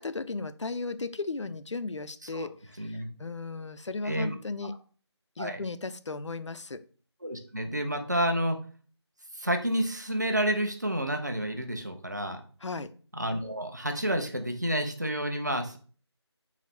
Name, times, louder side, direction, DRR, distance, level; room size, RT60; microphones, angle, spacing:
voice 1, 0.0-2.5 2.8-4.7 5.4-6.8 12.6-12.9, left 3 dB, 80° left, 12 dB, 0.4 m, -35 dB
voice 2, 2.8-3.1 4.0-4.3 5.4-5.6 7.2-8.6 9.3-12.4 13.1-15.8, right 1 dB, 40° right, 5 dB, 0.5 m, -30 dB
3.9 x 2.0 x 4.3 m, 0.40 s
figure-of-eight pair, 170°, 15 cm